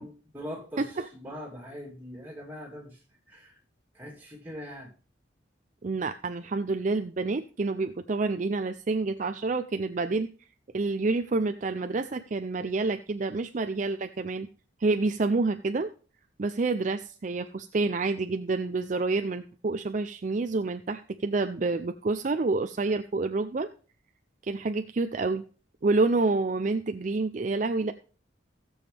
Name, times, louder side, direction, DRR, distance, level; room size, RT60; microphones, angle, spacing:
voice 1, 0.0-3.0 3.3-3.6 3.9-4.9, equal, 10° right, -3 dB, 3.0 m, -42 dB
voice 2, 5.8-10.3 10.7-14.5 14.8-15.9 16.4-23.7 24.4-25.4 25.8-27.9, right 3 dB, 40° right, 9 dB, 0.5 m, -28 dB
16.5 x 7.1 x 3.4 m, 0.38 s
head